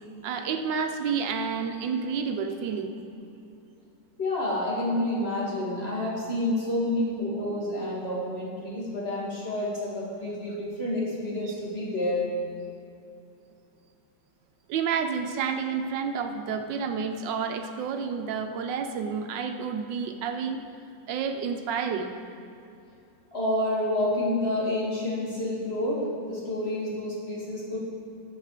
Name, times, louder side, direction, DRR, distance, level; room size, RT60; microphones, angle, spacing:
voice 1, 0.2-2.9 14.7-20.7 21.1-22.1, right 6 dB, 80° right, 6 dB, 1.4 m, -30 dB
voice 2, 4.2-12.2 23.3-27.9, left 1 dB, 35° left, -6 dB, 2.6 m, -29 dB
10.0 x 7.4 x 6.5 m, 2.7 s
omnidirectional pair, 2.0 m